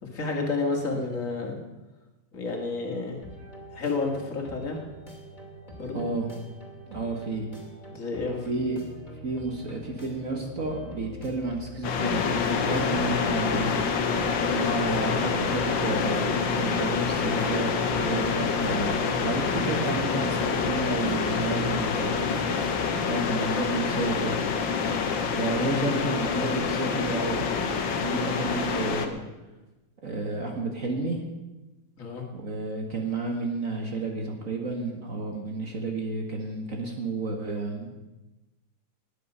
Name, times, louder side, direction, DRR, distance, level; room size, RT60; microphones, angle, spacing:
voice 1, 0.0-1.6 2.3-3.2 3.7-4.8 5.8-6.1 7.9-8.4 32.0-32.3, left 3 dB, 45° left, 1 dB, 2.4 m, -30 dB
sound 1, 3.2-22.9, equal, 25° left, 2.6 m, -44 dB
voice 2, 5.9-6.3 6.9-7.5 8.5-8.8 9.2-13.8 14.5-22.4 23.0-24.4 25.4-29.2 30.0-31.2 32.3-38.1, right 3 dB, 45° right, 2 dB, 1.7 m, -31 dB
sound 2, 11.8-29.1, left 5 dB, 80° left, 1.8 m, -27 dB
19.0 x 8.7 x 5.5 m, 1.1 s
omnidirectional pair, 2.0 m